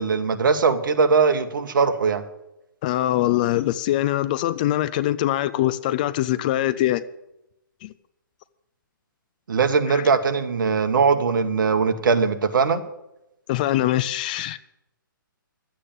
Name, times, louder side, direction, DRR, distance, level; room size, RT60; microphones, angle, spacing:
voice 1, 0.0-2.2 9.5-12.8, right 5 dB, 65° right, 1.7 m, -20 dB
voice 2, 2.8-7.0 7.8-7.9 9.9-10.0 13.5-14.6, left 14 dB, 25° left, 0.4 m, -23 dB
12.0 x 8.4 x 9.0 m
hypercardioid pair, 160°, 11 cm